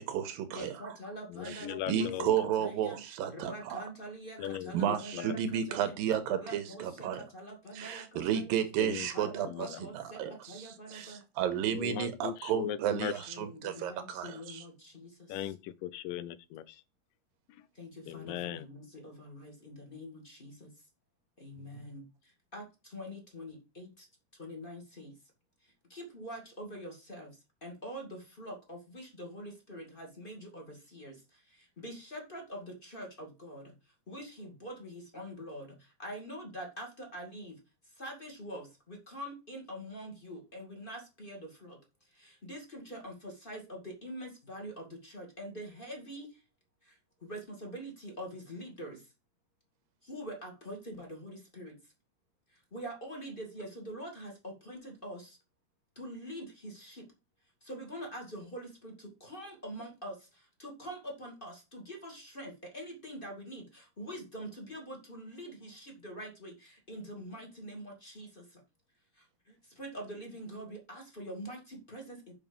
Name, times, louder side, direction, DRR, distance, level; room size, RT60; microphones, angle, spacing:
voice 1, 0.0-0.9 1.5-3.8 4.7-7.2 7.7-9.7 9.9-14.6, right 9 dB, 90° right, 2.8 m, -33 dB
voice 2, 0.5-5.9 6.3-8.6 9.1-11.2 13.3-15.5 17.7-20.7 21.4-24.1 24.3-25.1 25.6-27.3 27.6-33.7 34.1-37.5 37.8-41.8 42.1-46.4 46.8-49.1 50.0-51.7 52.5-55.4 55.9-57.1 57.6-68.6 69.2-72.3, equal, 20° left, 1.7 m, -45 dB
voice 3, 1.3-2.3 4.4-5.4 8.8-9.8 11.7-13.1 15.3-16.8 18.1-18.7, left 12 dB, 85° left, 2.3 m, -39 dB
6.9 x 5.8 x 5.3 m
omnidirectional pair, 3.9 m